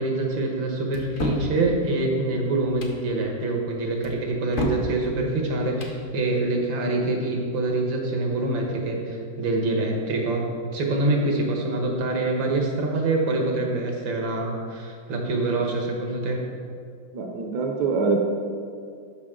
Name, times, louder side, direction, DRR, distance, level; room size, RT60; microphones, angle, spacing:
voice 1, 0.0-10.5 10.7-16.4, right 2 dB, 80° right, 0 dB, 2.0 m, -25 dB
sound 1, 0.9-1.5 2.7-3.0 4.0-4.9 5.6-6.0, left 1 dB, 50° left, 0.6 m, -30 dB
voice 2, 17.1-18.2, right 4 dB, 65° right, 2 dB, 1.2 m, -24 dB
12.5 x 5.6 x 3.7 m, 2.3 s
omnidirectional pair, 2.0 m